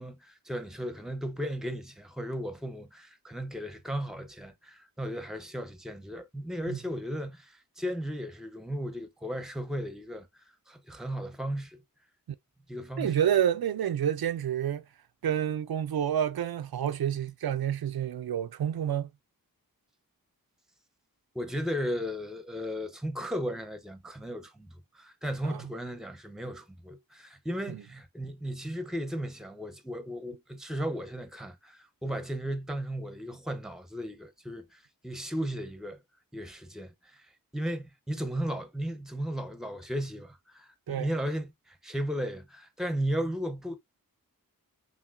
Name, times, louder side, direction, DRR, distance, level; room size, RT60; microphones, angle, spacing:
voice 1, 0.0-10.3 10.7-11.8 12.7-13.2 21.3-36.0 36.3-37.3 37.5-43.8, equal, ahead, 0.7 m, -35 dB
voice 2, 13.0-14.8 15.2-19.1 25.4-25.6 27.7-27.8 40.9-41.1, right 9 dB, 90° right, 0.5 m, -29 dB
5.8 x 2.6 x 2.5 m
wide cardioid pair, 80°, 35 cm